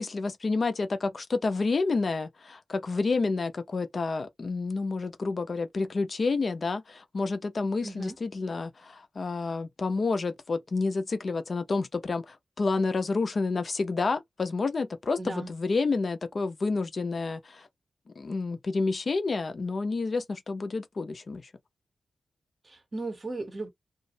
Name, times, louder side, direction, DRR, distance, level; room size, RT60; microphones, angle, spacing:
voice 1, 0.0-17.7 18.2-21.5, left 3 dB, 45° left, 0.5 m, -29 dB
voice 2, 7.8-8.2 15.2-15.5 22.6-23.7, right 2 dB, 35° right, 0.7 m, -36 dB
2.4 x 2.0 x 2.7 m
wide cardioid pair, 105°, 0 cm